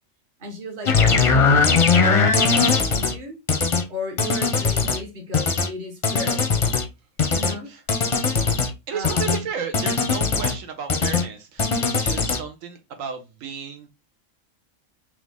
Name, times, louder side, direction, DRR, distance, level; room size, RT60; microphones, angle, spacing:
voice 1, 0.4-3.4 3.9-6.5 7.2-7.7 8.9-9.3 10.3-10.5, left 1 dB, 40° right, 1.3 m, -35 dB
sound 1, 0.9-3.1 3.5-3.8 4.2-5.0 5.3-5.7 6.0-6.9 7.2-7.5 7.9-8.7 9.0-9.4 9.7-10.6 10.9-11.3 11.6-12.4, left 4 dB, 35° left, 0.5 m, -20 dB
voice 2, 8.9-13.9, right 7 dB, 80° right, 1.1 m, -33 dB
3.9 x 3.0 x 3.5 m
omnidirectional pair, 1.4 m